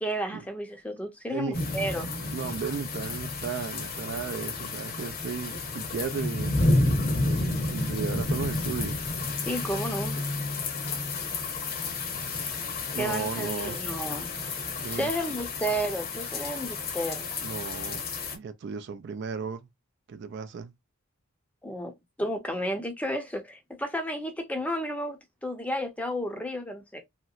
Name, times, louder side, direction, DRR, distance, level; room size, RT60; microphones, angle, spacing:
voice 1, 0.0-2.1 9.5-10.2 13.0-14.3 14.9-17.3 21.6-21.9 22.2-27.0, equal, 5° left, 0.6 m, -32 dB
sound 1, 1.5-18.4, left 2 dB, 45° left, 0.9 m, -31 dB
voice 2, 2.3-9.0 12.9-13.8 14.8-15.1 17.4-18.0 18.3-19.7 20.1-20.7, right 6 dB, 55° right, 0.3 m, -35 dB
3.0 x 2.9 x 2.4 m
head